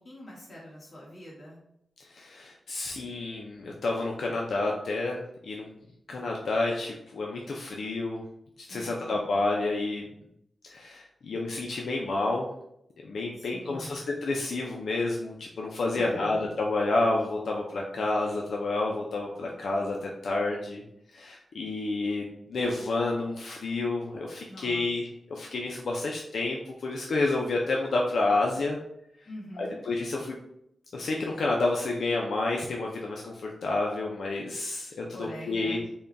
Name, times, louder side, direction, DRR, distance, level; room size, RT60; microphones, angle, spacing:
voice 1, 0.0-1.6 8.7-9.2 13.4-14.0 15.9-16.5 24.5-24.8 29.2-29.8 35.1-35.9, equal, 35° left, -5 dB, 1.4 m, -44 dB
voice 2, 2.1-5.7 6.1-8.2 8.6-10.0 10.6-12.5 13.0-20.8 21.1-28.8 29.6-30.3 30.9-35.8, left 2 dB, 70° left, -1 dB, 0.4 m, -29 dB
3.6 x 2.3 x 3.9 m, 0.77 s
wide cardioid pair, 165°, 0 cm